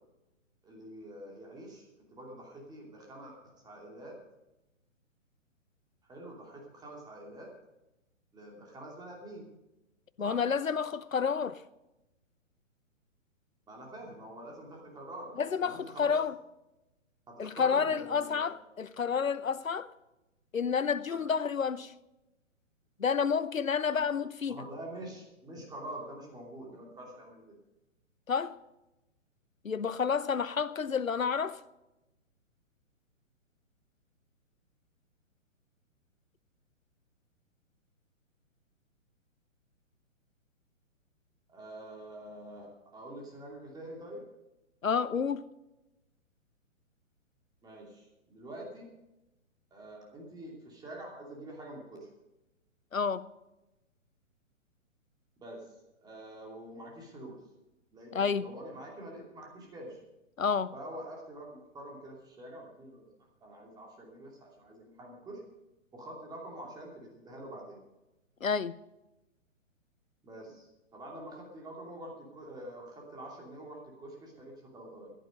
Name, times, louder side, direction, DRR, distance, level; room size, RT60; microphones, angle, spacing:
voice 1, 0.6-4.2 6.0-7.5 8.3-9.5 10.2-10.4 13.7-16.1 17.3-18.5 21.1-21.2 23.8-24.1 24.5-27.5 41.5-44.2 47.6-48.9 49.7-52.1 55.4-57.4 57.9-60.0 60.7-63.1 63.4-65.4 65.9-67.8 70.2-75.1, right 1 dB, 10° right, 2.8 m, -46 dB
voice 2, 10.2-11.6 15.4-16.3 17.4-19.9 20.5-21.9 23.0-24.6 28.3-28.6 29.6-31.6 44.8-45.4 52.9-53.2 58.1-58.5 60.4-60.7 68.4-68.8, left 6 dB, 80° left, 0.8 m, -30 dB
16.0 x 11.0 x 5.2 m
figure-of-eight pair, 125°, 39 cm